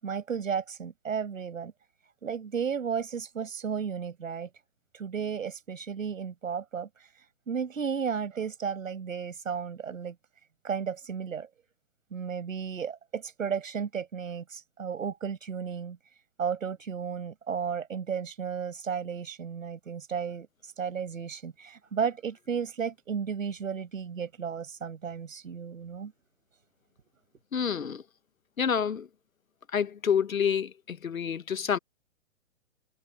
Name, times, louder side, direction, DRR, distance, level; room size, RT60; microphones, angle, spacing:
voice 1, 0.0-1.7 2.2-4.5 4.9-6.9 7.5-10.1 10.6-11.5 12.1-16.0 16.4-26.1, right 7 dB, 75° right, 6.7 m, -33 dB
voice 2, 27.5-28.0 28.6-29.1 29.7-31.8, left 7 dB, 90° left, 1.3 m, -28 dB
hypercardioid pair, 135°, 40 cm